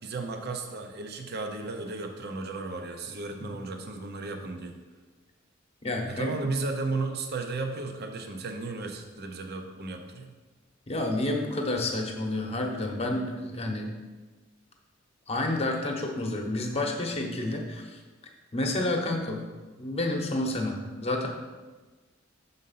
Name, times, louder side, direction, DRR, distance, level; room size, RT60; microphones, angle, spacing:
voice 1, 0.0-4.8 6.1-10.3, right 3 dB, 55° right, 4 dB, 0.7 m, -34 dB
voice 2, 5.8-6.3 10.9-13.9 15.3-18.0 18.5-19.4 19.8-21.3, left 2 dB, 30° left, 2 dB, 0.9 m, -29 dB
6.5 x 4.0 x 5.6 m, 1.3 s
head